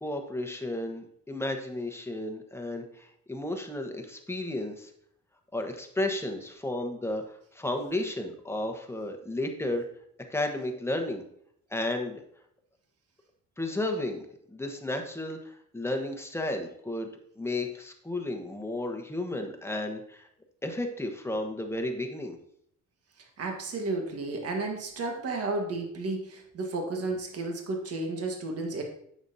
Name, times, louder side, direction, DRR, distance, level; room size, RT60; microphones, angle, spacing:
voice 1, 0.0-4.9 5.5-9.9 10.3-11.2 11.7-12.2 13.6-14.2 14.5-17.1 17.4-20.3 20.6-22.4, left 1 dB, 10° left, 4 dB, 1.1 m, -33 dB
voice 2, 23.2-28.8, right 3 dB, 55° right, 2 dB, 1.5 m, -32 dB
8.8 x 6.4 x 2.7 m, 0.68 s
cardioid pair, 90°, 30 cm